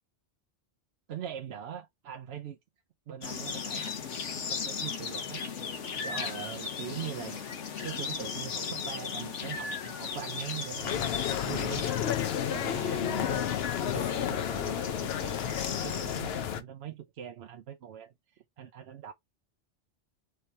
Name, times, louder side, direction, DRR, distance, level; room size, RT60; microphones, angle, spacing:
voice 1, 1.1-2.6 3.1-3.9 4.5-5.4 6.0-7.4 7.8-11.8 12.5-13.5 13.8-19.1, right 9 dB, 65° right, 0.8 m, -42 dB
sound 1, 3.2-16.2, left 6 dB, 85° left, 1.3 m, -37 dB
sound 2, 10.8-16.6, left 10 dB, 65° left, 0.8 m, -31 dB
4.5 x 2.9 x 3.2 m
omnidirectional pair, 1.2 m